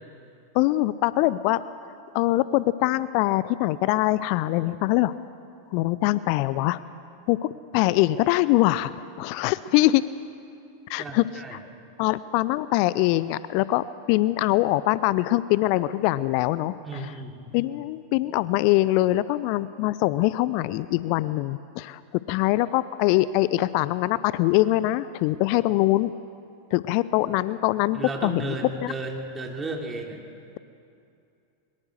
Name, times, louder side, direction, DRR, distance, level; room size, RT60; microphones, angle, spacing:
voice 1, 0.5-1.6 2.1-5.1 5.7-6.8 7.3-8.9 9.2-10.0 10.9-11.2 11.5-11.6 12.0-17.1 17.5-22.0 22.3-26.1 26.7-28.6 28.8-28.9, left 17 dB, 45° left, 17 dB, 0.5 m, -23 dB
voice 2, 11.0-11.6 16.8-17.5 27.9-30.2, right 3 dB, 15° right, 1 dB, 2.8 m, -34 dB
22.5 x 22.0 x 6.6 m, 2.5 s
figure-of-eight pair, 90°, 0 cm